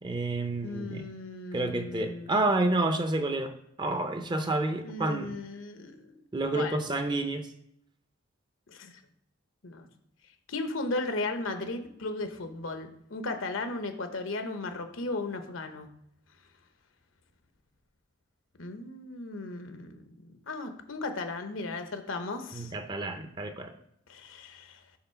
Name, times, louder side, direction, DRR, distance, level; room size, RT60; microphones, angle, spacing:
voice 1, 0.0-1.1 1.5-3.5 3.8-5.4 6.3-7.5 22.5-23.7, right 2 dB, 25° right, 7 dB, 0.6 m, -29 dB
voice 2, 0.6-2.4 4.8-6.2 6.5-6.8 8.7-9.0 9.6-9.9 10.5-15.9 18.6-22.7 24.1-24.8, left 2 dB, 80° left, 7 dB, 0.9 m, -36 dB
5.7 x 3.9 x 5.7 m, 0.75 s
head